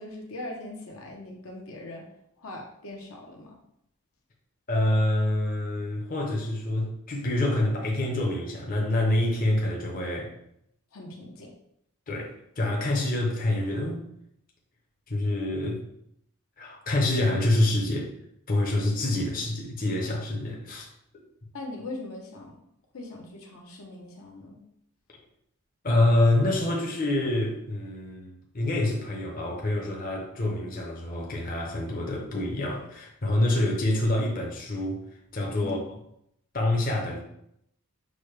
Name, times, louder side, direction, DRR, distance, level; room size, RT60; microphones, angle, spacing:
voice 1, 0.0-2.1 2.4-3.6 10.9-11.5 21.5-22.6 22.9-24.6 35.6-35.9, left 2 dB, 75° left, 0 dB, 0.8 m, -40 dB
voice 2, 4.7-10.3 12.1-14.0 15.1-15.8 16.6-18.1 18.5-20.9 25.8-35.0 35.3-35.8 36.5-37.2, left 1 dB, 40° left, -1 dB, 0.7 m, -26 dB
6.2 x 2.2 x 3.2 m, 0.75 s
head